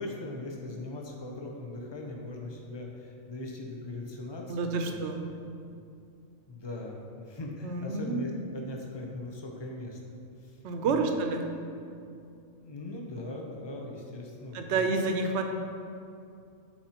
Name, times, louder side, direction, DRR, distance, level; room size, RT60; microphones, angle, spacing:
voice 1, 0.0-5.0 5.4-5.5 6.5-10.6 10.8-11.2 12.6-14.9, left 2 dB, 40° left, 0 dB, 0.4 m, -40 dB
voice 2, 4.5-5.3 7.6-8.2 10.6-11.5 14.5-15.4, right 3 dB, 65° right, 5 dB, 0.8 m, -29 dB
8.9 x 4.2 x 2.9 m, 2.5 s
omnidirectional pair, 1.4 m